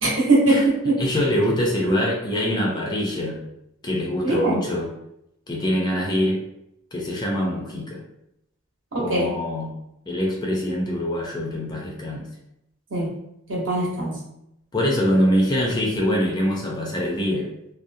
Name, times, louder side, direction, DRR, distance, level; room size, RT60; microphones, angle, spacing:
voice 1, 0.0-1.0 4.2-4.6 8.9-9.3 12.9-13.1 13.5-14.2, right 2 dB, 60° right, -5 dB, 0.9 m, -21 dB
voice 2, 1.0-3.4 3.8-4.9 5.5-6.5 6.9-8.0 9.0-9.7 10.1-12.3 14.7-17.5, equal, 20° left, -2 dB, 0.3 m, -24 dB
2.6 x 2.0 x 2.5 m, 0.81 s
head